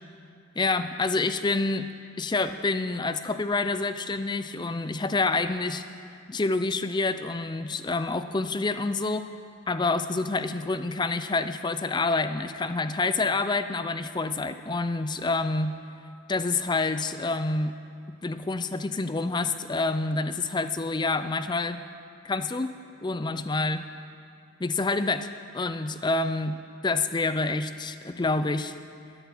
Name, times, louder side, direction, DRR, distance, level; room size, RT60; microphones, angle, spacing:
voice 1, 0.6-1.9 2.2-5.8 6.3-9.3 9.7-15.7 16.3-17.7 18.2-21.8 22.2-22.7 23.0-23.9 24.6-25.3 25.5-28.7, left 3 dB, 20° left, 10 dB, 0.4 m, -27 dB
12.5 x 9.9 x 7.1 m, 2.5 s
head